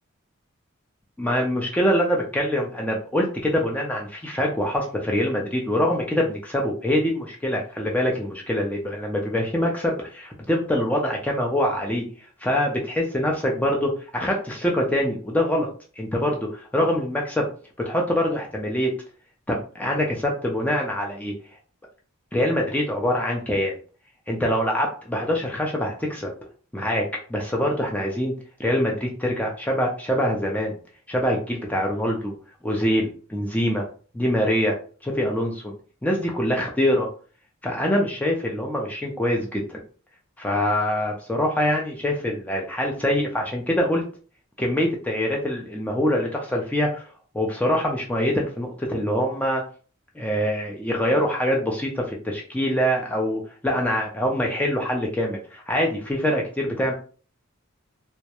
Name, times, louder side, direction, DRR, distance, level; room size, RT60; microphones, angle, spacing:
voice 1, 1.2-12.0 12.4-15.7 16.0-17.5 17.9-18.9 19.5-21.3 22.3-23.7 24.3-26.3 26.7-28.3 28.6-30.8 31.1-32.3 32.6-33.9 34.1-34.7 35.0-35.7 36.0-37.1 37.6-39.8 40.4-44.0 44.6-47.1 47.3-49.6 50.2-56.9, equal, 5° left, -1 dB, 0.3 m, -24 dB
2.2 x 2.0 x 2.8 m, 0.40 s
head